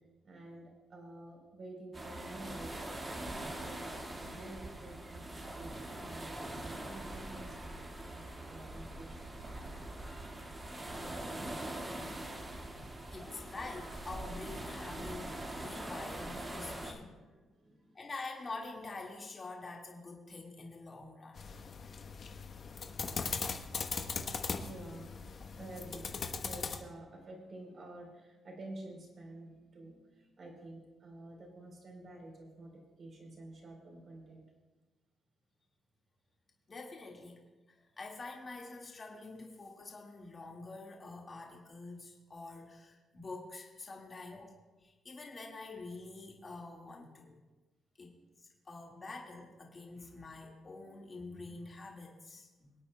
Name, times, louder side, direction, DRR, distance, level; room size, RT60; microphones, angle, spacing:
voice 1, 0.0-2.9 3.1-9.3 17.1-18.0 24.6-25.1 25.5-34.5, right 1 dB, 45° right, 0 dB, 3.6 m, -50 dB
sound 1, 1.9-16.9, right 1 dB, 25° right, 1.8 m, -43 dB
voice 2, 12.8-17.1 17.9-21.4 36.7-44.5 44.8-47.4 48.0-52.7, left 3 dB, 35° left, 0 dB, 1.8 m, -47 dB
sound 2, 21.4-26.8, left 5 dB, 50° left, 1.0 m, -39 dB
24.5 x 8.6 x 2.2 m, 1.2 s
cardioid pair, 90°, 0 cm